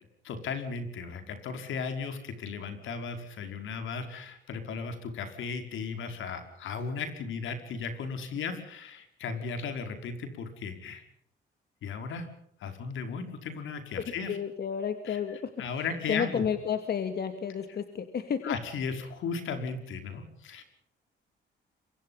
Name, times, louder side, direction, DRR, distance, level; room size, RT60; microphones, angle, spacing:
voice 1, 0.2-11.0 11.8-12.3 12.6-14.4 15.1-15.2 15.6-16.5 18.4-20.6, left 5 dB, 75° left, 6 dB, 5.3 m, -36 dB
voice 2, 14.0-18.6, left 7 dB, 55° left, 8 dB, 2.5 m, -32 dB
26.5 x 24.0 x 5.7 m, 0.70 s
cardioid pair, 90°, 20 cm